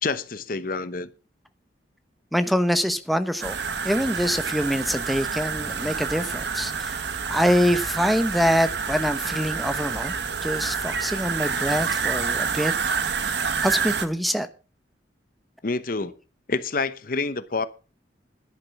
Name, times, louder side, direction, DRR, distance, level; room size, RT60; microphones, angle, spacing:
voice 1, 0.0-1.1 15.6-16.1 16.5-17.7, left 4 dB, 50° left, 0.8 m, -27 dB
voice 2, 2.3-3.6 3.8-10.1 10.4-13.0 13.6-14.5, equal, ahead, 0.8 m, -25 dB
sound 1, 3.4-14.1, right 5 dB, 70° right, 1.2 m, -28 dB
11.0 x 10.5 x 5.8 m
head